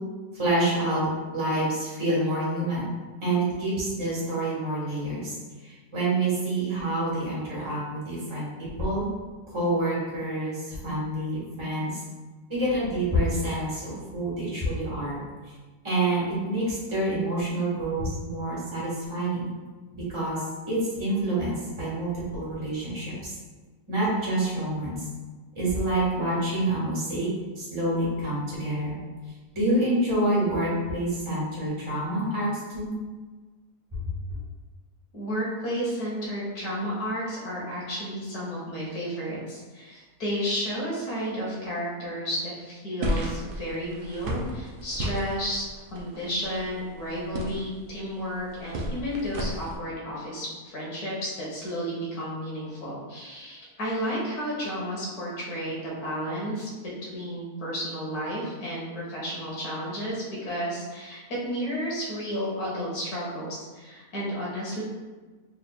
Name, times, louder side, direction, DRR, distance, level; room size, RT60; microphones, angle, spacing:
voice 1, 0.4-1.1 1.3-2.9 3.2-5.3 5.6-9.1 9.5-12.0 12.5-15.2 15.8-19.5 19.9-23.3 23.9-25.1 25.5-27.3 27.5-28.9 29.5-32.9, right 1 dB, 20° right, -7 dB, 1.4 m, -27 dB
voice 2, 35.1-64.8, equal, 70° left, -5 dB, 1.7 m, -32 dB
sound 1, 43.0-49.8, equal, 85° right, 0.4 m, -34 dB
4.6 x 3.4 x 2.3 m, 1.3 s
omnidirectional pair, 1.7 m